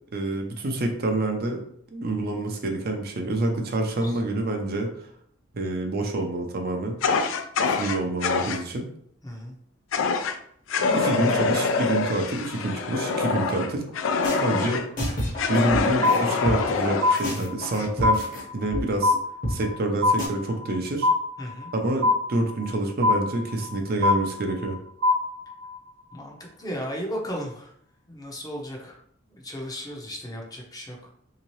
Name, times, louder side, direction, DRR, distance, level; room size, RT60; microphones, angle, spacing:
voice 1, 0.1-1.6 1.9-4.9 5.5-7.0 7.7-8.9 10.9-13.8 14.4-14.8 15.5-18.3 18.5-19.2 19.5-21.1 21.7-24.8, right 2 dB, 50° right, 3 dB, 0.5 m, -27 dB
voice 2, 3.6-4.2 9.2-9.5 14.3-14.7 21.4-21.7 26.1-27.7 28.1-29.0 29.3-31.0, equal, 20° left, 0 dB, 0.7 m, -35 dB
Fire, 7.0-8.6 9.9-10.4 10.7-14.9 15.4-17.2, left 4 dB, 70° left, 0.4 m, -25 dB
sound 1, 13.9-14.0 14.2-16.8 17.2-18.4 18.7-18.8 19.1-19.2 19.4-19.5 19.8-19.9 20.2-20.3, left 1 dB, 40° left, 1.1 m, -30 dB
sound 2, 16.0-16.7 17.0-17.8 18.0-18.8 19.0-19.8 20.0-20.8 21.0-21.8 22.0-22.8 23.0-23.8 24.0-24.8 25.0-25.8, left 3 dB, 70° right, 0.9 m, -23 dB
3.5 x 2.8 x 3.0 m, 0.66 s
head